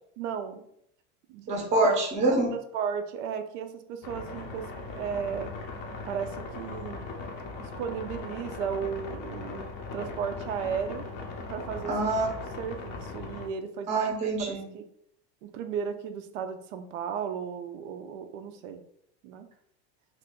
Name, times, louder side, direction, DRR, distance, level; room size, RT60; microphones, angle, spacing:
voice 1, 0.2-0.6 1.3-1.5 2.2-4.7 4.9-5.5 6.0-7.1 7.6-9.6 9.9-11.0 11.5-11.9 12.6-13.9 14.4-14.9 15.4-18.8 19.2-19.5, right 7 dB, 85° right, 7 dB, 0.5 m, -35 dB
voice 2, 1.5-2.5 11.9-12.3 13.9-14.7, right 2 dB, 20° right, 0 dB, 0.5 m, -25 dB
sound 1, 4.0-13.5, left 3 dB, 30° left, 0.4 m, -39 dB
2.5 x 2.4 x 3.6 m, 0.71 s
supercardioid pair, 165°, 36 cm